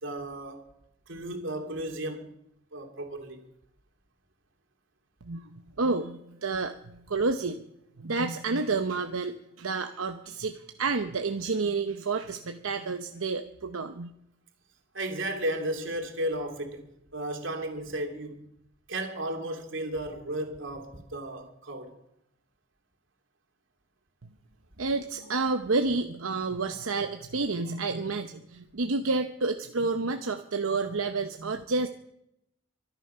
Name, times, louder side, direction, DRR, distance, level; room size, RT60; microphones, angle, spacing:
voice 1, 0.0-0.7 1.1-2.3 2.7-3.5 14.9-16.9 17.1-18.5 18.9-22.0, right 1 dB, 65° right, 2.9 m, -34 dB
voice 2, 5.2-6.7 7.1-7.6 8.0-14.1 24.8-31.9, right 3 dB, 90° right, 0.9 m, -30 dB
24.5 x 10.0 x 5.7 m
head